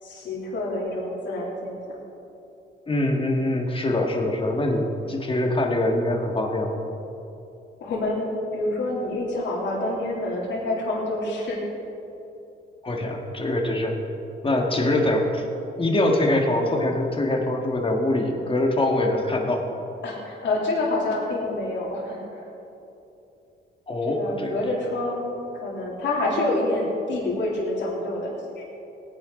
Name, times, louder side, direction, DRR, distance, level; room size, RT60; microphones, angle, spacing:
voice 1, 0.0-2.0 7.8-11.6 20.0-22.4 24.1-28.6, left 2 dB, 65° left, -4 dB, 3.2 m, -27 dB
voice 2, 2.9-6.8 12.8-14.0 14.4-15.5 15.8-19.7 23.9-24.5, left 1 dB, 25° left, 2 dB, 1.9 m, -23 dB
18.0 x 10.0 x 3.9 m, 2.9 s
cardioid pair, 90°, 20 cm